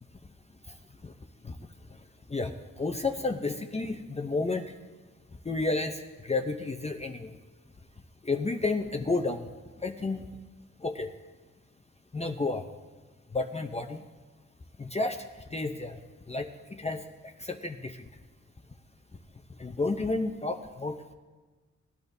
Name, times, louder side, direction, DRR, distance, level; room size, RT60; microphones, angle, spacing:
voice 1, 2.3-4.7 5.4-7.4 8.2-9.5 9.8-10.3 10.8-11.1 12.1-12.6 13.3-14.0 14.8-16.0 16.3-18.0 19.6-21.0, left 3 dB, 20° left, 4 dB, 0.6 m, -31 dB
19.0 x 11.0 x 2.6 m, 1.3 s
wide cardioid pair, 115°, 31 cm